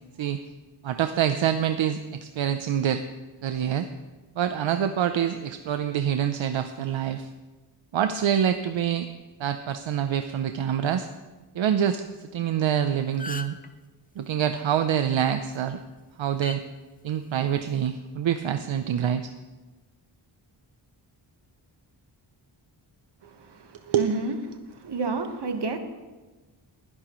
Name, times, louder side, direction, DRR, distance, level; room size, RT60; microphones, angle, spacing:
voice 1, 0.8-3.0 3.4-3.9 4.4-7.3 7.9-9.1 9.4-11.1 11.5-12.0 12.3-13.5 14.2-15.8 16.2-16.6 17.0-19.3 23.9-24.1, right 9 dB, 80° right, 8 dB, 0.7 m, -26 dB
sound 1, 12.6-12.8 13.0-13.7 15.3-15.6 16.4-16.6 17.6-17.9, left 3 dB, 20° left, 0.6 m, -37 dB
voice 2, 23.2-24.4 24.8-25.8, right 3 dB, 60° right, 6 dB, 1.4 m, -30 dB
20.0 x 11.0 x 3.1 m, 1.2 s
wide cardioid pair, 110°, 46 cm